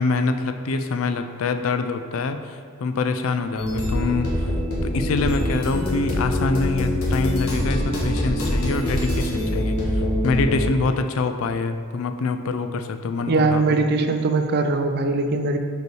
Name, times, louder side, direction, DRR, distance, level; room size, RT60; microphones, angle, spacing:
voice 1, 0.0-4.6 4.8-13.8, left 3 dB, 70° left, 8 dB, 0.4 m, -25 dB
sound 1, 3.6-10.6, left 1 dB, 85° left, 1.4 m, -24 dB
voice 2, 13.3-15.6, right 3 dB, 50° right, 7 dB, 0.4 m, -21 dB
5.2 x 4.6 x 4.6 m, 2.2 s
head